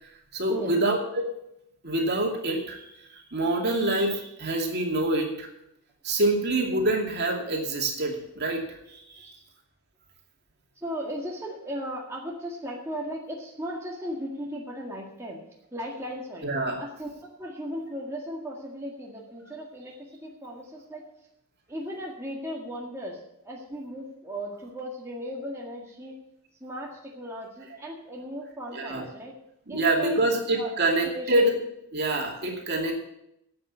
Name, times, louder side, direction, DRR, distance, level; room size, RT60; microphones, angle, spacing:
voice 1, 0.0-1.2 1.8-5.5 6.0-9.3 16.4-16.8 28.7-29.0 29.7-31.5 31.9-33.0, right 1 dB, 50° right, 1 dB, 2.6 m, -26 dB
voice 2, 10.8-15.4 15.7-16.5 16.8-21.0 21.7-26.2 26.6-29.4 29.7-30.2 30.5-30.7 31.0-31.4, equal, 10° right, -3 dB, 1.8 m, -36 dB
11.5 x 8.2 x 8.4 m, 0.79 s
head